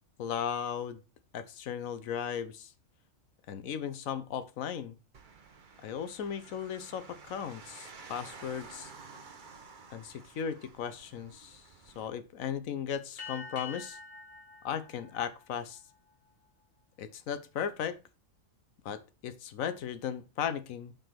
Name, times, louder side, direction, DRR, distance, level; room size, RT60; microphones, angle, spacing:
voice 1, 0.2-1.0 1.3-2.7 3.5-5.0 5.8-8.9 9.9-11.6 12.0-14.0 14.6-15.8 17.0-18.0 18.8-20.9, left 8 dB, 85° left, 1.2 m, -36 dB
sound 1, 5.1-12.1, right 5 dB, 45° right, 0.8 m, -52 dB
sound 2, 13.2-16.1, left 5 dB, 70° left, 1.9 m, -46 dB
5.2 x 4.8 x 5.7 m
omnidirectional pair, 1.4 m